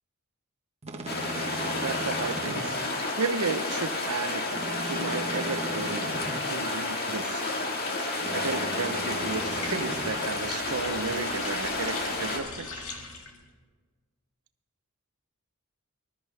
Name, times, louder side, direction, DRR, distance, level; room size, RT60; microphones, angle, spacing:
sound 1, 0.8-2.7 4.5-6.4 8.2-10.1, right 2 dB, 30° right, 1.3 m, -37 dB
sound 2, 1.1-12.4, left 2 dB, 45° left, 1.9 m, -31 dB
voice 1, 1.8-2.8 3.2-4.4 4.9-6.2 6.5-7.4 8.3-12.8, right 4 dB, 90° right, 10 dB, 0.8 m, -33 dB
sound 3, 8.8-13.5, left 3 dB, 70° left, 1.9 m, -41 dB
20.5 x 12.5 x 3.5 m, 1.5 s
head